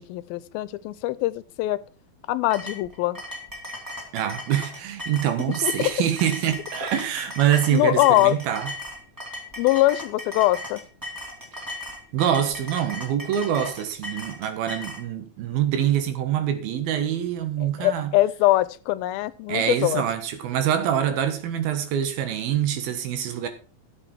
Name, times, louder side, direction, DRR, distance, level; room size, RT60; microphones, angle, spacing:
voice 1, 0.0-1.8 2.3-3.2 5.6-5.9 7.7-8.4 9.6-10.8 17.6-20.0, left 17 dB, 85° left, 2.5 m, -22 dB
sound 1, 2.5-15.0, left 1 dB, 5° right, 1.8 m, -37 dB
voice 2, 4.1-8.7 12.1-18.1 19.5-23.5, right 10 dB, 85° right, 3.3 m, -25 dB
13.0 x 7.7 x 4.4 m
omnidirectional pair, 4.2 m